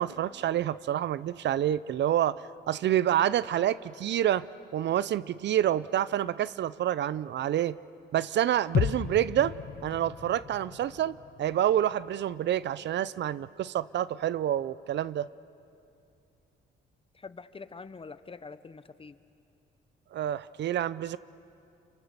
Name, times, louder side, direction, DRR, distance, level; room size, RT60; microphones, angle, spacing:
voice 1, 0.0-4.5 4.7-7.8 8.1-9.6 9.8-15.3 20.1-21.2, right 11 dB, 65° right, 18 dB, 0.6 m, -28 dB
sound 1, 8.7-12.7 13.0-13.1, left 9 dB, 50° left, 0.8 m, -34 dB
voice 2, 17.1-19.2, left 4 dB, 25° left, 13 dB, 0.9 m, -45 dB
29.0 x 23.5 x 6.7 m, 2.6 s
cardioid pair, 90°, 20 cm